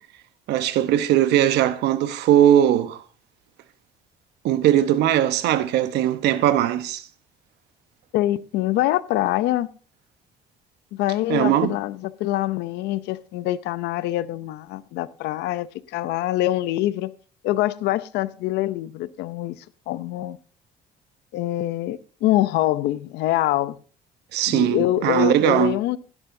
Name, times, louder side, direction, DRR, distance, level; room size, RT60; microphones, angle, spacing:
voice 1, 0.5-3.0 4.4-7.1 11.3-11.7 24.3-25.8, right 11 dB, 80° right, 1.0 m, -19 dB
voice 2, 8.1-9.7 10.9-17.1 17.4-20.4 21.3-23.8 24.5-26.0, left 15 dB, 85° left, 0.7 m, -24 dB
16.5 x 11.0 x 2.7 m
cardioid pair, 110°, 17 cm